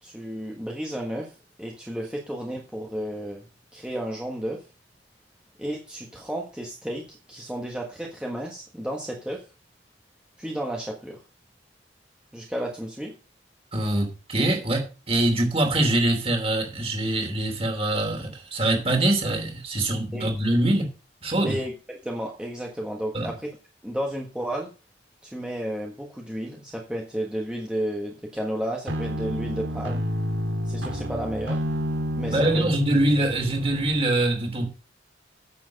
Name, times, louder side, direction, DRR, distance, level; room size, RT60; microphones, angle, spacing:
voice 1, 0.0-3.4 3.7-4.6 5.6-9.4 10.4-11.2 12.3-13.1 20.1-20.3 21.4-23.6 23.8-24.7 25.2-30.1 30.6-31.6 32.2-32.7, equal, 5° right, -1 dB, 1.4 m, -32 dB
voice 2, 13.7-20.9 21.2-21.6 23.1-23.3 32.3-34.7, right 1 dB, 30° right, 3 dB, 3.0 m, -24 dB
sound 1, 28.9-34.0, equal, 85° right, 2.4 m, -30 dB
9.7 x 7.7 x 5.2 m, 0.34 s
head